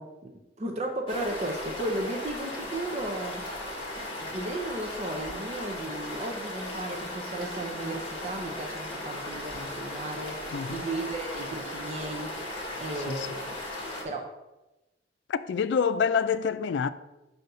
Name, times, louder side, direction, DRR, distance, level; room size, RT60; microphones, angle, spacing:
voice 1, 0.0-3.4 4.2-10.4 10.7-12.4 12.8-13.5 14.0-14.3, right 1 dB, 40° right, 0.6 m, -35 dB
sound 1, 1.1-14.0, left 1 dB, 30° left, 1.7 m, -37 dB
voice 2, 10.5-10.8 13.1-13.3 15.3-16.9, left 6 dB, 80° left, 0.3 m, -27 dB
5.7 x 3.9 x 5.5 m
head